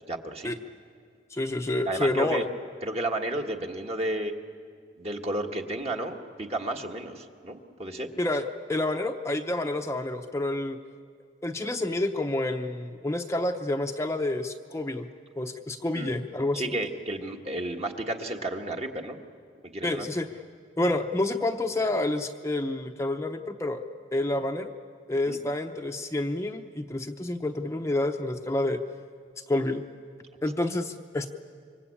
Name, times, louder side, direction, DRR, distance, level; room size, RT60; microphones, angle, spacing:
voice 1, 0.1-0.5 1.8-2.4 2.8-4.3 5.0-8.1 15.9-16.1 16.5-19.2 19.6-20.1 25.3-25.4, right 1 dB, 35° right, 3 dB, 1.6 m, -32 dB
voice 2, 1.3-2.5 8.2-10.8 11.4-15.1 15.4-16.7 19.8-20.3 20.8-23.8 24.1-24.7 25.1-28.8 29.5-29.8 30.4-31.3, left 2 dB, 15° left, 4 dB, 0.7 m, -28 dB
26.5 x 24.0 x 8.6 m, 2.2 s
head